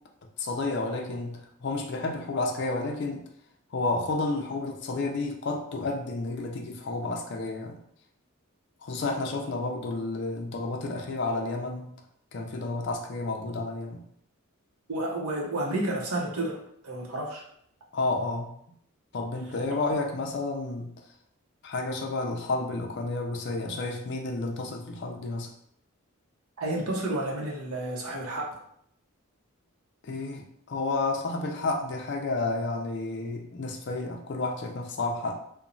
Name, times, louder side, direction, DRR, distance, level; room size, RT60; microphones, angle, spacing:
voice 1, 0.4-3.3 3.7-7.8 8.8-12.0 12.3-14.0 17.9-18.6 19.1-20.9 21.6-25.5 30.0-35.4, left 3 dB, 50° left, 2 dB, 0.4 m, -31 dB
voice 2, 14.9-16.6 16.8-17.4 19.7-19.8 26.6-28.5, right 1 dB, 85° right, -2 dB, 0.7 m, -31 dB
2.9 x 2.1 x 2.5 m, 0.69 s
head